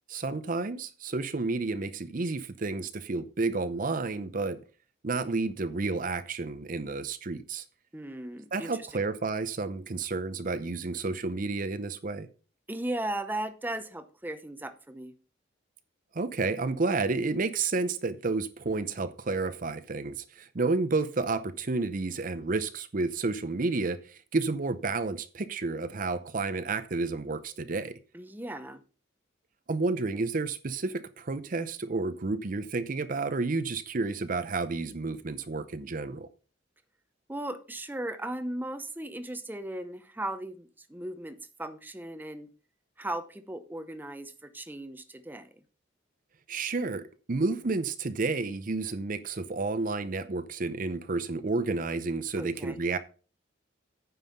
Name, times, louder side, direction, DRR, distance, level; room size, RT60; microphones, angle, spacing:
voice 1, 0.1-4.6 5.0-7.6 8.5-12.3 16.1-28.0 29.7-36.3 46.5-53.0, right 3 dB, 45° right, 0.6 m, -31 dB
voice 2, 7.9-8.9 12.7-15.1 28.1-28.8 37.3-42.5 43.0-45.6 52.4-52.8, right 1 dB, 10° right, 0.7 m, -37 dB
9.3 x 5.5 x 5.6 m
head